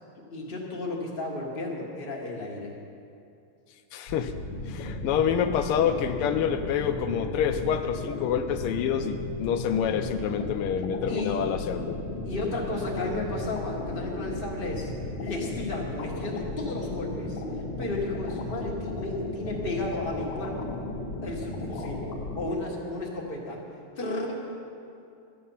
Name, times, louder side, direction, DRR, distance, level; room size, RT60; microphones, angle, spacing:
voice 1, 0.3-2.7 11.1-11.4 12.2-14.9 15.2-17.4 17.8-20.7 21.2-22.1 22.3-23.6 24.0-24.4, left 2 dB, 25° left, -2 dB, 1.6 m, -33 dB
voice 2, 3.9-4.3 4.7-12.0, left 8 dB, 85° left, 7 dB, 1.5 m, -27 dB
sound 1, 4.1-22.5, left 2 dB, 60° left, 1.8 m, -35 dB
13.0 x 8.6 x 5.6 m, 2.6 s
omnidirectional pair, 2.4 m